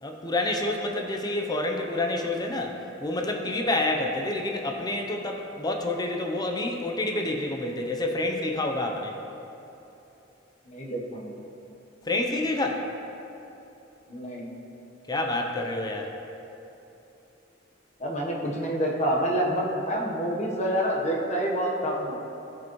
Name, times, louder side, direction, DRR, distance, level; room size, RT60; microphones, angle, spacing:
voice 1, 0.0-9.2 12.0-12.9 15.1-16.1, left 2 dB, 20° left, 2 dB, 0.6 m, -28 dB
voice 2, 10.7-11.4 14.1-14.5 18.0-22.2, equal, 35° left, -2 dB, 1.0 m, -27 dB
13.0 x 5.1 x 3.0 m, 2.9 s
head